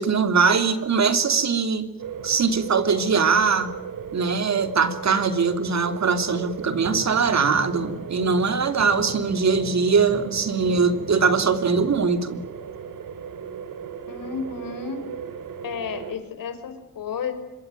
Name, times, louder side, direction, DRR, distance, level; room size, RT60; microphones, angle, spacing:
voice 1, 0.0-1.9 2.2-3.7 4.1-12.4, right 5 dB, 55° right, 9 dB, 3.1 m, -21 dB
sound 1, 2.0-16.2, right 7 dB, 80° right, 2.9 m, -37 dB
sound 2, 6.6-12.1, right 1 dB, 20° right, 6.7 m, -39 dB
voice 2, 14.1-15.0 15.6-17.3, left 6 dB, 85° left, 9 dB, 4.9 m, -32 dB
26.0 x 23.0 x 9.2 m, 0.99 s
cardioid pair, 105°, 33 cm